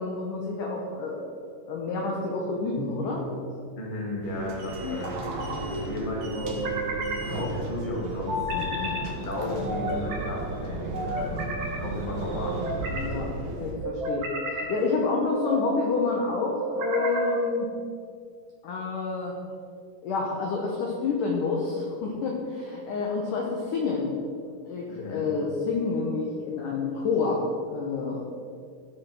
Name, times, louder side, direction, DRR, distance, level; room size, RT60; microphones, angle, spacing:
voice 1, 0.0-1.3 1.7-3.3 8.5-8.9 12.9-13.3 13.6-17.7 18.6-19.3 20.0-24.1 24.7-27.4 27.7-28.2, left 4 dB, 70° left, -1 dB, 2.0 m, -28 dB
sound 1, 2.8-3.4 4.8-5.6 6.4-7.2 8.3-9.0 9.7-10.3 10.9-11.8 12.4-13.1 13.8-14.7 15.3-15.8 16.6-17.4, right 1 dB, 50° right, 2.7 m, -32 dB
voice 2, 3.8-5.1 5.8-8.4 9.2-11.4 11.8-12.6 24.9-25.3, left 1 dB, 20° left, -3 dB, 1.3 m, -34 dB
sound 2, 4.2-13.7, right 2 dB, 65° right, 3.1 m, -35 dB
14.5 x 6.2 x 6.2 m, 2.2 s
omnidirectional pair, 5.4 m